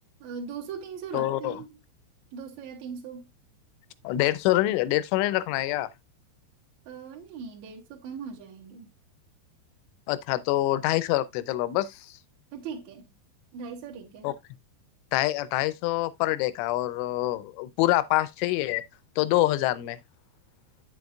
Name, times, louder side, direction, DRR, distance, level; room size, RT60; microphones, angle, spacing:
voice 1, 0.2-1.8 2.3-3.2 6.9-8.9 12.5-13.1 13.5-14.3, right 6 dB, 55° right, 2.1 m, -39 dB
voice 2, 1.1-1.6 4.0-5.9 10.1-12.1 14.2-14.3 15.1-18.8 19.2-20.0, left 16 dB, 85° left, 3.1 m, -26 dB
9.0 x 7.9 x 2.4 m
omnidirectional pair, 5.6 m